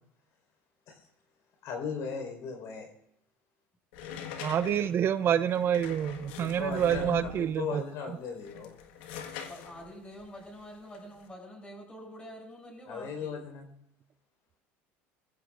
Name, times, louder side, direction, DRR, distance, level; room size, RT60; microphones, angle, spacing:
voice 1, 1.6-2.9 6.4-8.7 12.9-13.7, left 6 dB, 65° left, 3 dB, 4.7 m, -37 dB
sound 1, 3.9-7.6 8.3-11.3, left 7 dB, 85° left, 1.6 m, -43 dB
voice 2, 4.4-7.8, right 9 dB, 45° right, 13 dB, 0.6 m, -27 dB
voice 3, 9.5-13.4, equal, 20° left, -1 dB, 7.6 m, -46 dB
26.5 x 15.0 x 2.6 m, 0.76 s
supercardioid pair, 110°, 6 cm